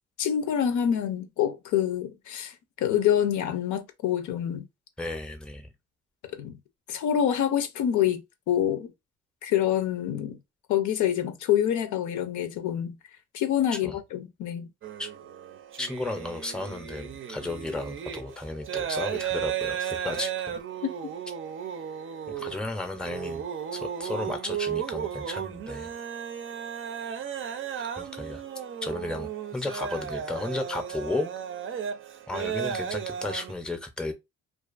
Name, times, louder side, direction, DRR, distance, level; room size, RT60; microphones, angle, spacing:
voice 1, 0.2-4.6 6.3-6.6 6.9-8.9 9.4-10.4 10.7-13.0 13.3-14.7 20.8-21.1, left 10 dB, 75° left, 0.6 m, -26 dB
voice 2, 5.0-5.7 13.8-14.0 15.0-15.1 15.8-20.5 22.4-23.4 23.7-25.9 27.8-28.4 28.8-31.3 32.3-34.1, left 2 dB, 5° left, 0.6 m, -34 dB
sound 1, 14.8-33.5, right 8 dB, 45° right, 0.5 m, -35 dB
2.4 x 2.4 x 2.4 m
cardioid pair, 90°, 30 cm